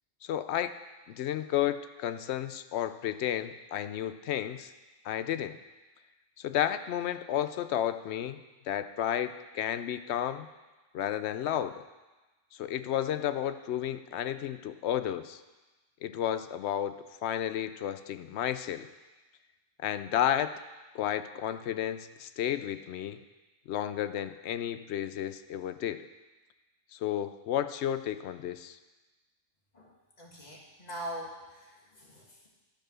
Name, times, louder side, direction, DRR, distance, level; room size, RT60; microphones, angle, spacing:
voice 1, 0.2-0.7 1.1-4.7 5.0-5.6 6.4-8.4 8.7-10.5 10.9-11.8 12.6-15.4 16.0-16.9 17.2-18.9 19.8-20.5 20.9-23.2 23.7-26.1 26.9-28.8, left 10 dB, 70° left, 12 dB, 0.8 m, -32 dB
voice 2, 30.2-32.5, right 1 dB, 35° left, -3 dB, 1.9 m, -42 dB
13.0 x 5.0 x 6.2 m, 1.2 s
omnidirectional pair, 1.3 m